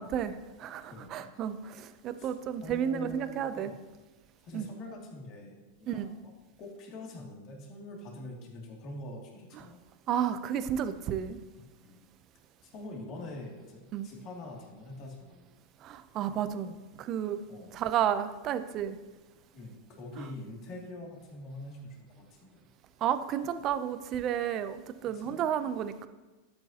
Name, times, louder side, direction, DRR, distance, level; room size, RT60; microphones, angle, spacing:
voice 1, 0.0-3.7 4.5-4.7 5.9-6.2 10.1-11.4 13.9-14.1 15.8-17.4 17.7-19.0 20.2-20.3 23.0-26.1, right 9 dB, 40° right, 12 dB, 0.6 m, -32 dB
voice 2, 0.8-1.3 2.2-2.3 2.6-3.7 4.4-6.3 6.6-9.8 11.8-12.0 12.7-15.4 17.5-17.7 19.5-22.6 25.0-25.4, left 2 dB, 45° left, -1 dB, 2.5 m, -44 dB
12.0 x 8.8 x 2.9 m, 1.2 s
supercardioid pair, 125°, 0 cm